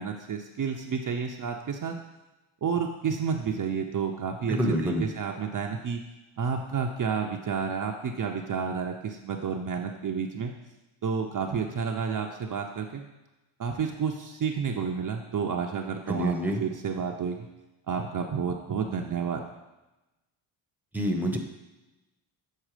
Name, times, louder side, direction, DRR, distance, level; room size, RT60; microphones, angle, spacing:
voice 1, 0.0-1.9 2.6-6.0 6.4-10.5 11.0-13.1 13.6-16.3 16.6-17.5 17.9-19.4, right 6 dB, 40° right, 2 dB, 0.7 m, -30 dB
voice 2, 4.5-5.0 16.1-16.6 20.9-21.4, equal, 5° right, 3 dB, 1.0 m, -27 dB
7.5 x 4.3 x 5.0 m, 1.0 s
cardioid pair, 80°, 50 cm